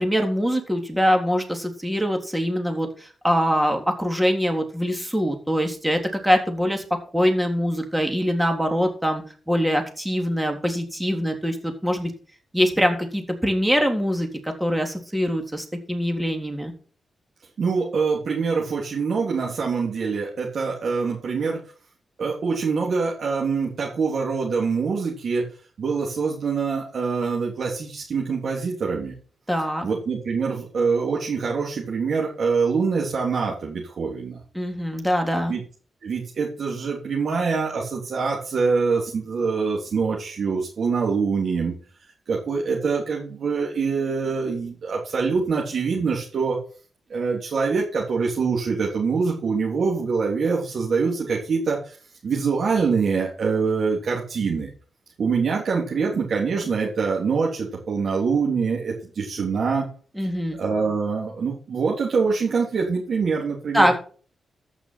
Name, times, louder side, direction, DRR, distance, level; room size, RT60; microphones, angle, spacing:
voice 1, 0.0-6.8 7.1-12.1 12.5-16.7 29.5-29.9 34.5-35.5 60.2-60.6 63.7-63.9, equal, 5° right, 4 dB, 3.5 m, -23 dB
voice 2, 17.6-21.6 22.2-25.4 25.8-29.1 29.8-34.4 35.5-35.6 36.0-41.7 42.3-46.6 47.1-51.9 52.2-54.7 55.2-59.9 60.6-64.0, right 5 dB, 65° right, -3 dB, 3.5 m, -24 dB
14.5 x 6.1 x 5.9 m, 0.41 s
cardioid pair, 55°, 0 cm